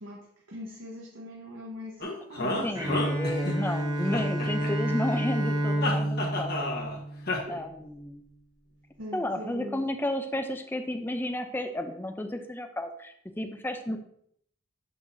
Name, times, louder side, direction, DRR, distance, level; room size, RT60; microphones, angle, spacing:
voice 1, 0.0-3.0 7.4-7.7 9.0-9.8, equal, 70° right, -3 dB, 1.1 m, -41 dB
sound 1, 2.0-3.8 4.1-5.2 5.8-7.0 7.3-7.4, left 2 dB, 50° left, 1.3 m, -31 dB
voice 2, 2.6-6.8 7.5-8.2 9.1-14.0, left 1 dB, 10° left, 6 dB, 0.5 m, -32 dB
Bowed string instrument, 2.8-7.6, right 1 dB, 15° right, 1.1 m, -29 dB
7.4 x 6.0 x 2.7 m, 0.67 s
head